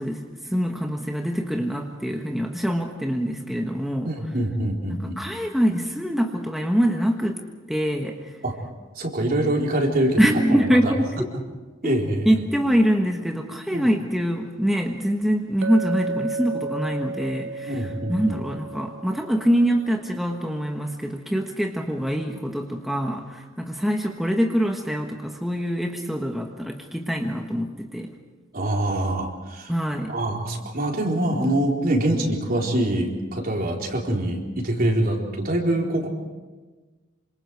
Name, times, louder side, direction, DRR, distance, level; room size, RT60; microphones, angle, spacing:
voice 1, 0.0-4.1 4.9-7.4 7.7-8.4 10.2-11.1 12.2-28.1 29.7-30.1, equal, ahead, 2 dB, 1.4 m, -24 dB
voice 2, 4.0-5.2 8.4-8.5 9.0-10.2 10.5-10.9 11.8-12.4 13.7-13.9 17.6-18.4 28.5-29.7 30.1-36.1, right 1 dB, 45° right, 0 dB, 4.2 m, -24 dB
Chink clink, 15.6-19.8, right 3 dB, 75° right, 1.8 m, -33 dB
27.5 x 26.0 x 4.8 m, 1.3 s
head